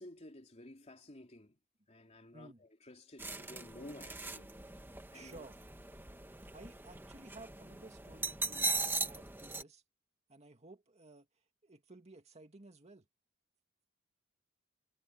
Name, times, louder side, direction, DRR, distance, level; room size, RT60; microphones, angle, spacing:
voice 1, 0.0-1.6 1.9-4.5 5.1-5.4, left 1 dB, 30° left, 3.1 m, -53 dB
sound 1, 3.2-9.6, right 3 dB, 10° right, 2.0 m, -40 dB
voice 2, 5.1-5.6 6.5-8.7 9.0-9.8 10.3-11.3 11.6-13.1, right 2 dB, 30° right, 2.2 m, -55 dB
head